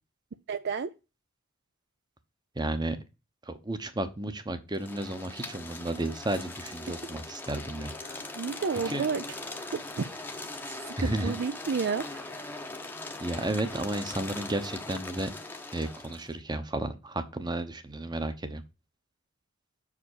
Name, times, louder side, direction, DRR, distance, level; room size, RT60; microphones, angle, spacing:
voice 1, 0.5-0.9 8.3-10.1 10.7-12.6, right 5 dB, 50° right, 0.4 m, -32 dB
voice 2, 2.6-3.0 3.5-8.3 8.9-9.1 11.0-11.3 13.2-15.3 15.7-18.6, right 1 dB, 20° right, 0.9 m, -33 dB
sound 1, 4.7-16.3, left 2 dB, 10° left, 0.8 m, -40 dB
6.6 x 4.9 x 6.4 m
head